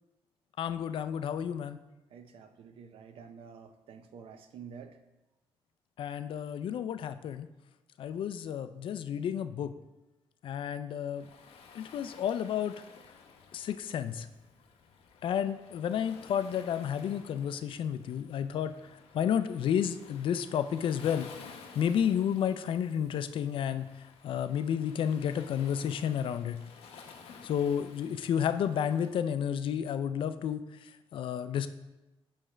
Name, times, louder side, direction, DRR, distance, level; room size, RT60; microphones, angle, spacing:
voice 1, 0.6-1.8 6.0-7.5 8.0-9.7 10.4-11.3 11.7-12.8 13.5-14.3 15.2-18.7 19.1-21.3 21.8-23.9 24.2-26.6 27.4-31.7, left 8 dB, 60° left, 11 dB, 0.4 m, -31 dB
voice 2, 2.1-5.0, right 6 dB, 70° right, 8 dB, 0.6 m, -49 dB
Waves surf, 11.1-29.1, left 5 dB, 85° left, 0.8 m, -54 dB
8.6 x 3.3 x 4.9 m, 1.0 s
cardioid pair, 145°, 10 cm